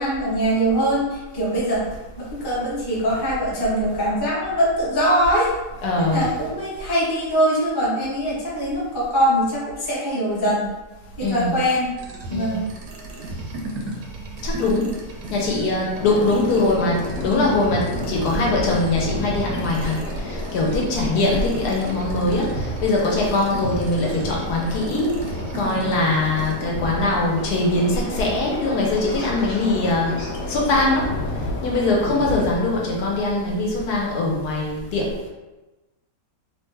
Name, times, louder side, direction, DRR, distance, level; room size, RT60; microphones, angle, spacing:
voice 1, 0.0-1.8 2.3-5.5 6.0-10.7 11.2-11.9 12.3-12.7, equal, 20° left, -7 dB, 0.6 m, -22 dB
voice 2, 5.8-6.3 11.2-11.6 12.3-12.6 14.4-14.9 15.3-19.9 20.2-25.1 25.5-30.1 30.5-31.1 31.6-35.1, left 2 dB, 75° left, -2 dB, 1.2 m, -22 dB
sound 1, 12.0-26.5, right 2 dB, 80° right, 1.2 m, -35 dB
sound 2, 15.9-32.5, left 2 dB, 60° left, 0.8 m, -31 dB
3.3 x 2.1 x 3.2 m, 1.1 s
omnidirectional pair, 1.8 m